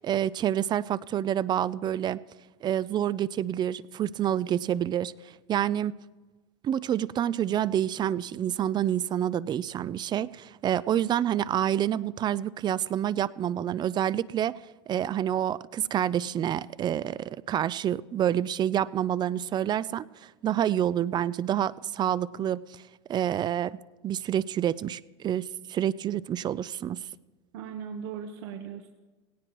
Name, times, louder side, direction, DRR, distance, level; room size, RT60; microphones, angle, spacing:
voice 1, 0.0-2.2 2.6-5.1 5.5-6.0 6.6-14.6 14.9-22.8 23.1-23.8 24.0-27.0, right 10 dB, 30° right, 19 dB, 0.4 m, -28 dB
voice 2, 27.5-28.9, right 7 dB, 75° right, 5 dB, 1.0 m, -38 dB
17.5 x 17.0 x 3.1 m, 1.3 s
supercardioid pair, 115°, 15 cm